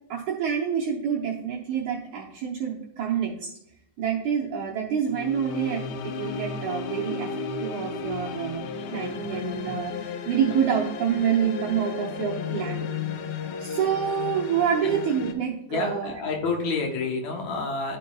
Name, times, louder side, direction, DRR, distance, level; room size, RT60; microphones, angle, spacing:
voice 1, 0.1-3.5 4.0-13.1 13.6-16.1, right 8 dB, 70° right, -4 dB, 2.0 m, -27 dB
sound 1, 5.1-15.3, left 4 dB, 85° left, 2.5 m, -34 dB
voice 2, 15.7-18.0, left 4 dB, 65° left, 0 dB, 2.1 m, -29 dB
11.5 x 5.2 x 2.3 m, 0.76 s
omnidirectional pair, 4.1 m